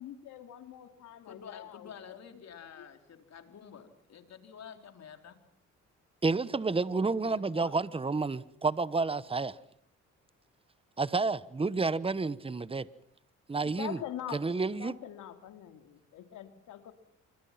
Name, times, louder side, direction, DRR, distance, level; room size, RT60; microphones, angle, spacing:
voice 1, 0.0-1.9 2.3-2.9 3.2-3.3 13.6-16.9, left 11 dB, 85° left, 2.6 m, -44 dB
voice 2, 1.2-5.4 7.2-7.7, left 7 dB, 60° left, 4.0 m, -49 dB
voice 3, 6.2-9.6 11.0-12.9 13.5-14.0 14.3-14.9, right 4 dB, 20° right, 1.1 m, -30 dB
27.0 x 23.5 x 5.9 m
cardioid pair, 90°, 30 cm